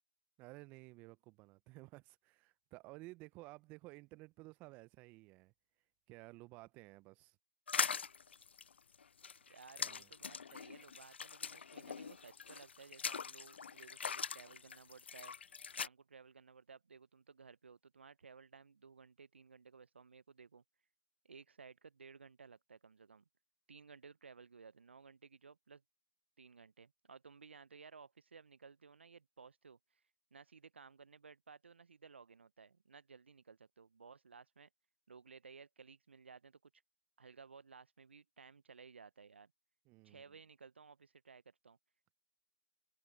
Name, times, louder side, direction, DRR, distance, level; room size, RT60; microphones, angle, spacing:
voice 1, 0.4-5.5 6.1-7.4 9.8-10.1 39.9-40.2, right 22 dB, 25° right, 0.9 m, -55 dB
sound 1, 7.7-15.9, left 6 dB, 70° left, 0.4 m, -42 dB
voice 2, 9.5-20.6 21.2-23.2 23.7-25.8 26.4-30.0 30.3-34.7 35.1-36.7 37.2-39.5 40.0-41.8, right 5 dB, 75° right, 0.8 m, -58 dB
figure-of-eight pair, 140°, 6 cm